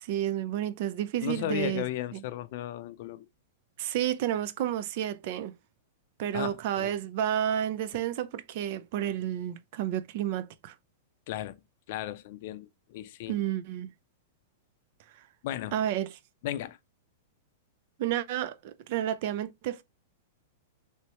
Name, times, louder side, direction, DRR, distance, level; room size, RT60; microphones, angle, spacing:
voice 1, 0.0-1.8 2.1-2.2 3.8-5.5 6.2-10.7 13.3-13.9 15.7-16.1 18.0-19.8, right 11 dB, 55° right, 0.4 m, -31 dB
voice 2, 1.2-3.3 6.3-6.9 11.3-11.6 11.9-13.4 15.4-15.8 16.4-16.8, left 13 dB, 55° left, 0.4 m, -35 dB
3.1 x 2.9 x 3.0 m
hypercardioid pair, 135°, 0 cm